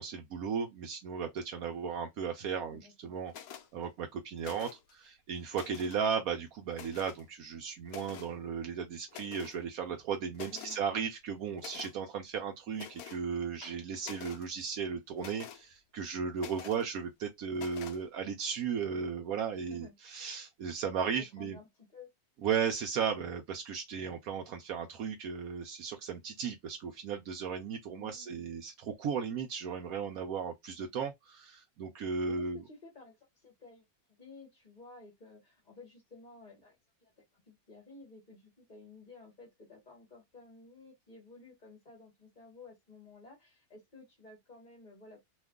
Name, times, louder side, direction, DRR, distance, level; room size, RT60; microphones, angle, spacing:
voice 1, 0.0-3.3 3.7-21.6 22.4-32.6, right 6 dB, 75° right, 1.1 m, -36 dB
voice 2, 2.5-3.1 10.5-10.8 19.5-19.9 21.0-22.1 27.9-28.5 32.3-45.2, left 3 dB, 35° left, 1.2 m, -54 dB
sound 1, 3.3-3.7 4.4-4.9 5.4-6.0 6.7-7.2 7.9-8.3 9.1-9.6 10.0-10.1 10.3-10.8 11.6-11.9 12.7-13.2 13.6-14.5 15.2-15.6 16.4-16.8 17.5-18.0, left 9 dB, 75° left, 1.1 m, -47 dB
2.9 x 2.4 x 3.5 m
omnidirectional pair, 1.6 m